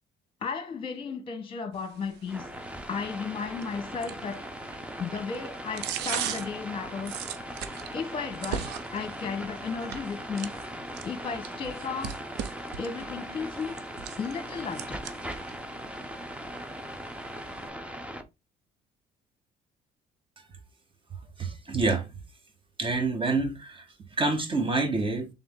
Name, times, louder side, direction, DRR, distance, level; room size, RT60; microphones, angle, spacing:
voice 1, 0.4-2.5 2.9-4.5 5.0-7.2 7.9-10.5 11.0-12.1 12.8-13.8 14.2-15.1, left 5 dB, 30° left, 1.1 m, -34 dB
sound 1, 1.7-17.7, right 9 dB, 85° right, 0.6 m, -41 dB
sound 2, 2.3-18.2, equal, 5° right, 0.7 m, -39 dB
voice 2, 21.4-22.1 22.8-23.8 24.2-25.3, right 3 dB, 30° right, 1.5 m, -27 dB
3.6 x 3.4 x 3.6 m
cardioid pair, 110°, 17 cm